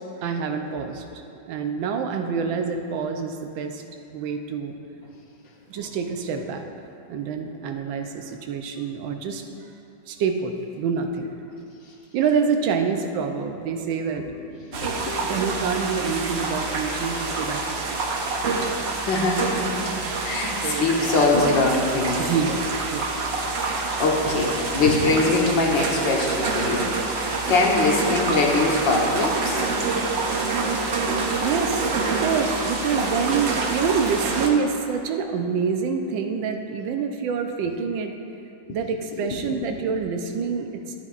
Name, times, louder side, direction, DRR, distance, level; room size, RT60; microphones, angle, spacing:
voice 1, 0.2-1.0 1.5-3.8 4.1-4.7 5.7-6.7 7.1-9.4 10.1-11.3 12.1-14.2 15.2-18.0 20.5-21.3 22.2-23.1 31.4-38.1 38.7-40.9, right 6 dB, 90° right, 5 dB, 1.4 m, -27 dB
voice 2, 14.6-15.2 19.0-19.9 20.2-22.2 23.6-29.6 39.2-39.7, left 3 dB, 75° left, -1 dB, 1.8 m, -23 dB
sound 1, 14.7-34.5, right 3 dB, 55° right, 0.7 m, -27 dB
12.0 x 9.7 x 2.4 m, 2.7 s
omnidirectional pair, 2.1 m